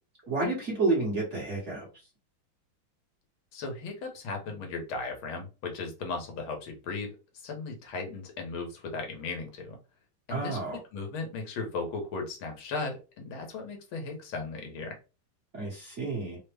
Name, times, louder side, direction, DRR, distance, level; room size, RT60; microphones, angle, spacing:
voice 1, 0.3-1.9 10.3-10.8 15.5-16.4, right 3 dB, 40° right, -3 dB, 1.3 m, -30 dB
voice 2, 3.5-9.8 10.3-15.0, left 3 dB, 75° left, 3 dB, 1.8 m, -36 dB
3.9 x 2.1 x 3.3 m, 0.30 s
omnidirectional pair, 2.3 m